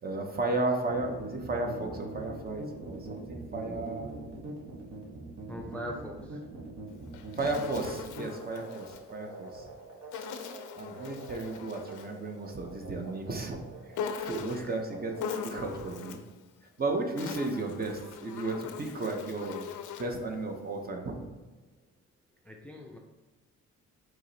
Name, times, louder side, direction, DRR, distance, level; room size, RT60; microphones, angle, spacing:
voice 1, 0.0-4.1 7.3-9.7 10.8-13.6 13.8-15.2 15.4-16.2 16.8-19.7 20.0-21.3, right 2 dB, 30° right, 3 dB, 0.7 m, -34 dB
sound 1, 0.8-15.7, right 2 dB, 65° right, 1.1 m, -43 dB
voice 2, 5.5-6.4 14.5-14.7 22.4-23.0, left 1 dB, 5° left, 1 dB, 0.4 m, -41 dB
Insect, 6.9-9.1 10.1-12.2 13.9-14.8 15.2-16.3 17.0-20.2, left 6 dB, 80° left, 0.5 m, -40 dB
4.7 x 3.0 x 2.7 m, 1.3 s
cardioid pair, 90°, 30 cm